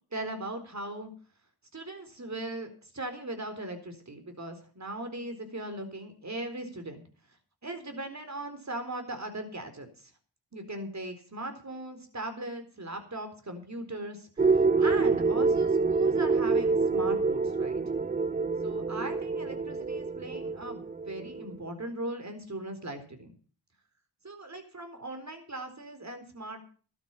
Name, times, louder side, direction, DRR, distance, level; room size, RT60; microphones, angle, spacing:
voice 1, 0.1-1.1 1.7-7.0 7.6-10.1 10.5-17.8 18.6-23.3 24.2-26.6, right 1 dB, 40° right, 8 dB, 4.2 m, -39 dB
sound 1, 14.4-21.7, right 4 dB, 20° right, 0.5 m, -27 dB
13.0 x 12.0 x 5.6 m, 0.40 s
cardioid pair, 50°, 41 cm